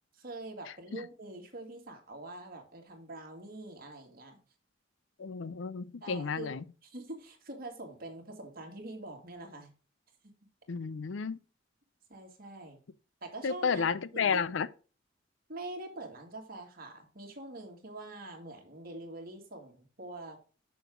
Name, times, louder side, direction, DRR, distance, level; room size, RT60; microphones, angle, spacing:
voice 1, 0.1-4.4 6.0-6.6 6.8-9.7 12.1-12.8 13.2-13.8 14.1-14.4 15.5-20.4, right 2 dB, 50° right, 2.3 m, -44 dB
voice 2, 5.2-6.6 10.7-11.4 13.4-14.7, left 6 dB, 75° left, 0.5 m, -32 dB
6.9 x 6.5 x 3.7 m
head